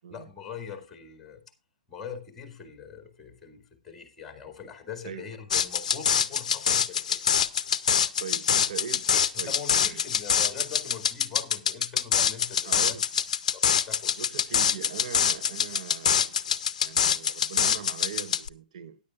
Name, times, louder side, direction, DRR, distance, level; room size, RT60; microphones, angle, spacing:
voice 1, 0.1-1.4 1.9-7.2 9.4-12.9 13.5-14.1 14.5-14.6, left 6 dB, 5° left, 2.1 m, -42 dB
sound 1, 5.5-18.5, left 8 dB, 55° left, 0.6 m, -25 dB
voice 2, 8.2-10.0 12.6-13.0 14.2-16.4 16.8-19.0, right 8 dB, 50° right, 0.8 m, -40 dB
16.0 x 9.9 x 2.4 m
figure-of-eight pair, 125°, 5 cm